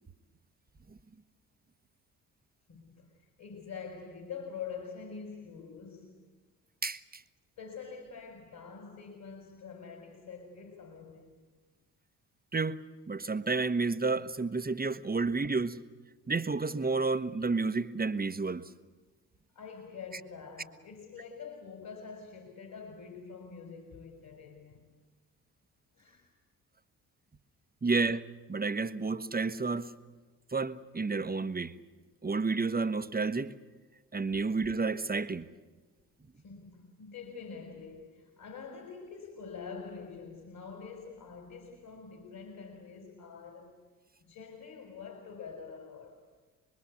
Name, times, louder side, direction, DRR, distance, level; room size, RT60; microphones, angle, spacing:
voice 1, 2.7-6.2 7.6-11.4 15.1-15.2 19.5-24.9 25.9-26.3 34.3-34.4 36.4-43.7 44.2-46.2, left 5 dB, 50° left, 4.7 m, -46 dB
voice 2, 6.8-7.2 12.5-12.8 13.1-15.8 16.3-18.7 27.8-29.9 30.5-31.7 32.2-33.5 34.1-35.5, right 4 dB, 20° right, 1.1 m, -31 dB
26.5 x 21.5 x 8.4 m
hypercardioid pair, 45°, 44 cm